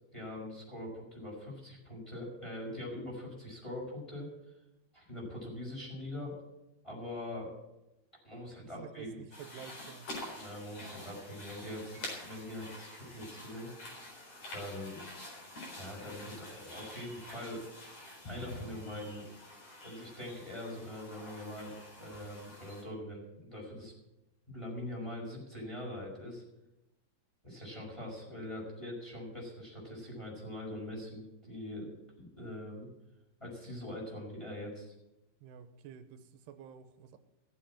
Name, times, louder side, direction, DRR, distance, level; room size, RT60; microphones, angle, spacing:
voice 1, 0.1-4.5 4.9-6.3 6.8-7.5 8.2-9.2 10.3-13.7 14.5-15.0 15.7-17.6 18.3-19.3 19.8-23.9 24.5-26.4 27.4-32.9 33.4-34.9, left 1 dB, 5° left, -3 dB, 5.1 m, -43 dB
voice 2, 8.6-10.1 35.4-37.2, right 8 dB, 85° right, 10 dB, 2.9 m, -50 dB
sound 1, 9.3-22.8, left 1 dB, 40° left, 5.0 m, -47 dB
15.5 x 7.7 x 8.6 m, 0.94 s
omnidirectional pair, 4.8 m